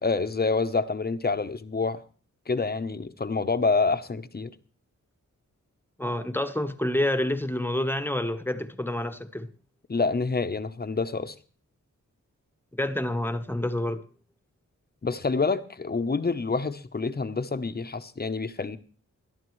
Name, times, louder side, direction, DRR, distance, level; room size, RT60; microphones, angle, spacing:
voice 1, 0.0-2.0 2.5-4.5 9.9-11.3 15.0-18.8, left 4 dB, 30° left, 0.8 m, -27 dB
voice 2, 6.0-9.5 12.8-14.0, left 1 dB, 5° left, 1.0 m, -28 dB
20.5 x 11.5 x 3.1 m
wide cardioid pair, 95°, 30 cm